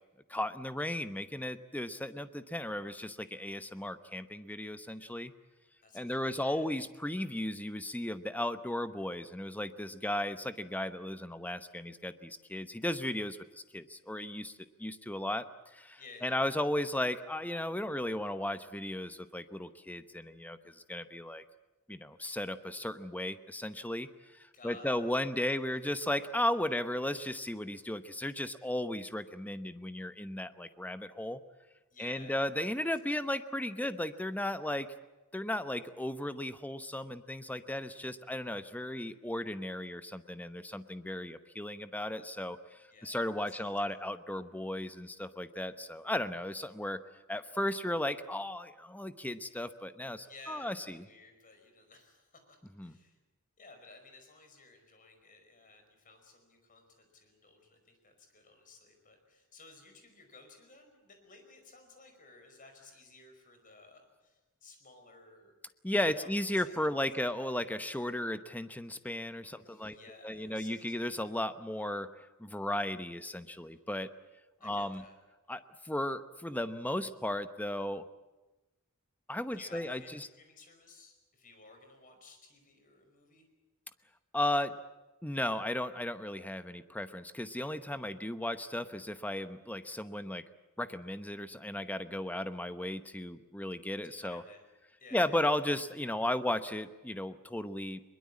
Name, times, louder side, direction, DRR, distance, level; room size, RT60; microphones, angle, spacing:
voice 1, 0.3-5.3 5.9-15.5 15.7-21.4 21.9-31.4 32.0-34.9 35.3-47.0 47.3-51.0 52.8-53.0 65.8-70.0 70.2-74.1 74.6-75.0 75.5-78.1 79.3-80.3 84.3-84.7 85.2-90.4 90.8-94.4 95.1-98.0, left 1 dB, 10° left, 11 dB, 0.9 m, -35 dB
voice 2, 5.8-6.7 16.0-16.4 24.5-25.6 31.9-32.4 42.9-43.2 43.5-43.6 50.2-52.6 52.8-53.2 53.6-65.5 66.1-66.3 66.5-66.7 69.5-70.7 73.5-73.8 74.6-75.2 79.5-83.5 94.2-94.6 95.0-95.5, left 3 dB, 40° left, 5 dB, 5.2 m, -56 dB
22.0 x 21.5 x 8.6 m, 1.1 s
head